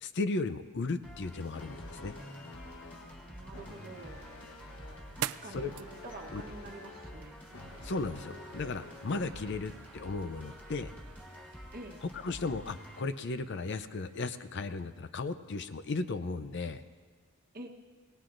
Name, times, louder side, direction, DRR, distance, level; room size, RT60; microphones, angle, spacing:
voice 1, 0.0-2.1 5.5-5.7 6.3-6.4 7.8-10.9 12.2-16.8, left 3 dB, 50° left, 11 dB, 0.5 m, -35 dB
sound 1, 1.0-13.0, equal, 10° left, 3.0 m, -49 dB
sound 2, 1.5-9.5, left 3 dB, 70° left, 1.2 m, -51 dB
voice 2, 3.3-4.2 5.1-5.7 6.0-7.4 11.7-12.0 17.5-17.7, right 1 dB, 40° right, 3 dB, 1.1 m, -47 dB
sound 3, 3.5-14.5, right 12 dB, 80° right, 0.3 m, -48 dB
23.5 x 19.0 x 2.6 m, 1.5 s
head